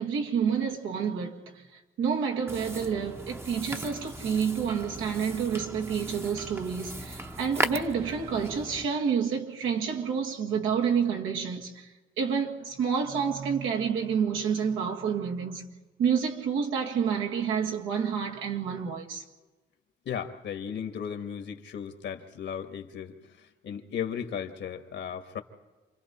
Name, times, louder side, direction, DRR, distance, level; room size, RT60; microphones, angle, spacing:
voice 1, 0.0-11.9 12.2-15.7 16.0-19.2, right 6 dB, 85° right, 1.9 m, -29 dB
sound 1, 2.5-8.8, right 1 dB, 10° right, 0.9 m, -37 dB
voice 2, 20.0-25.4, left 8 dB, 65° left, 1.6 m, -36 dB
28.5 x 23.5 x 4.3 m
cardioid pair, 90°, 20 cm